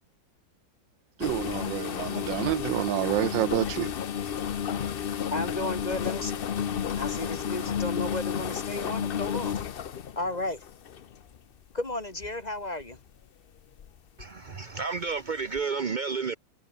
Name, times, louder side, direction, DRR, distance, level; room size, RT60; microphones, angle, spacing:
sound 1, 1.2-11.4 12.0-12.3 12.8-13.0 13.8-14.2 14.5-14.6 15.6-15.7, left 8 dB, 70° left, 0.5 m, -32 dB
voice 1, 1.2-3.9, right 15 dB, 80° right, 1.3 m, -28 dB
voice 2, 5.3-6.4 6.9-9.6 10.2-10.6 11.7-13.0, left 2 dB, 20° left, 2.3 m, -33 dB
voice 3, 14.2-16.4, right 5 dB, 45° right, 0.6 m, -31 dB
omnidirectional pair, 2.0 m